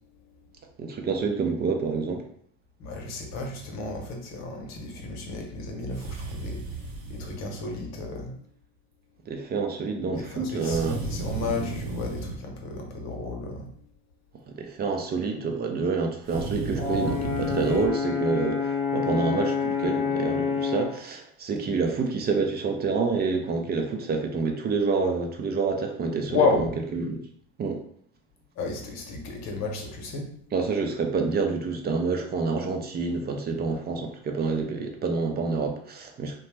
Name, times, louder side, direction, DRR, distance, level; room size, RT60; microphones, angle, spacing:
voice 1, 0.8-2.2 9.3-11.0 14.5-26.5 27.0-27.2 27.6-27.8 30.5-36.4, right 4 dB, 30° right, 3 dB, 0.5 m, -28 dB
voice 2, 2.8-8.4 10.3-13.7 26.3-26.8 28.6-30.3, left 3 dB, 50° left, 2 dB, 0.9 m, -32 dB
sound 1, 5.9-7.4 10.6-12.4 16.2-17.9, right 3 dB, 85° right, 0.8 m, -34 dB
Brass instrument, 16.8-21.0, left 5 dB, 25° left, 0.8 m, -28 dB
2.8 x 2.1 x 3.2 m, 0.63 s
supercardioid pair, 95°, 34 cm